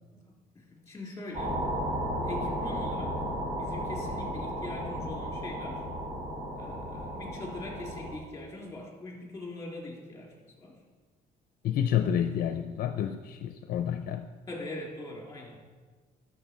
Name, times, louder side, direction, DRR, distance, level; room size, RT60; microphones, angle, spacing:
voice 1, 0.3-1.6 2.2-3.2 3.6-5.8 6.5-10.7 14.5-15.6, left 2 dB, 15° left, -2 dB, 3.1 m, -42 dB
sound 1, 1.3-8.2, equal, 25° right, 2.8 m, -34 dB
voice 2, 11.6-14.3, left 9 dB, 60° left, 8 dB, 0.5 m, -29 dB
12.0 x 6.5 x 4.4 m, 1.4 s
cardioid pair, 110°, 17 cm